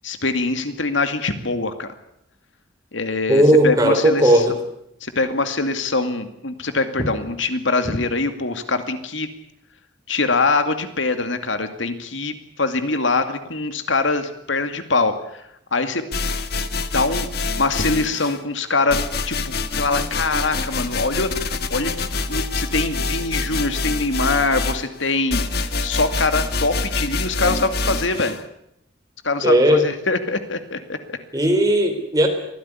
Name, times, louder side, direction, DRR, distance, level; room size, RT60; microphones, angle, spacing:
voice 1, 0.0-1.9 2.9-4.4 5.0-9.3 10.1-15.1 15.7-16.0 16.9-17.3 17.6-19.0 19.3-28.3 29.2-31.2, left 3 dB, 80° left, 9 dB, 2.4 m, -23 dB
voice 2, 3.3-4.6 29.4-29.8 31.3-32.3, right 1 dB, 20° right, 5 dB, 3.9 m, -16 dB
sound 1, 16.1-18.4 18.9-28.4, left 3 dB, 55° left, 1.6 m, -26 dB
23.5 x 16.5 x 9.9 m, 0.77 s
head